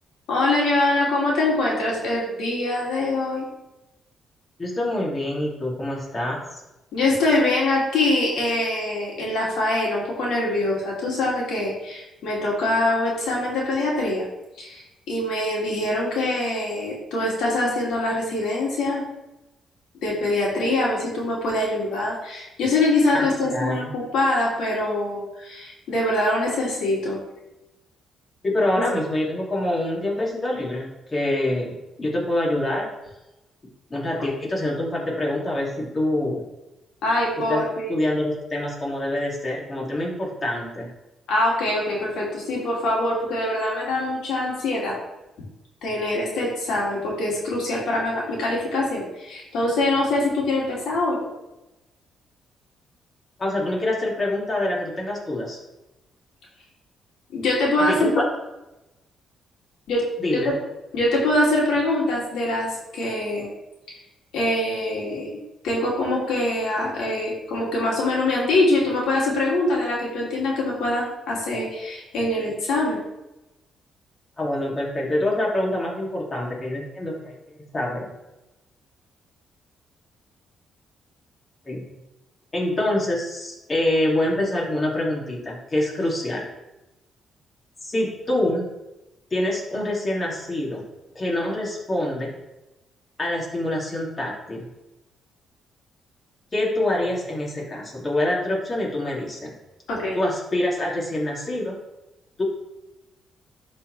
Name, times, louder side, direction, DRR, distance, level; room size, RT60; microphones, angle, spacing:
voice 1, 0.3-3.4 6.9-14.3 14.6-19.0 20.0-27.2 37.0-38.0 41.3-45.0 45.8-51.2 57.3-58.1 59.9-60.0 60.3-60.5 60.9-63.5 63.9-64.0 64.3-65.3 65.6-73.0 99.9-100.2, left 2 dB, 80° left, -4 dB, 2.5 m, -24 dB
voice 2, 4.6-6.6 23.1-23.9 28.4-32.9 33.9-36.4 37.5-37.6 37.9-40.9 53.4-55.6 57.8-58.2 60.2-60.6 74.4-78.1 81.7-81.8 82.5-86.5 87.8-88.7 89.3-90.8 91.1-92.3 93.2-94.7 96.5-99.5 100.1-101.8 102.4-102.5, left 1 dB, 30° left, -4 dB, 2.6 m, -25 dB
11.5 x 4.4 x 3.3 m, 0.97 s
cardioid pair, 90°, 0 cm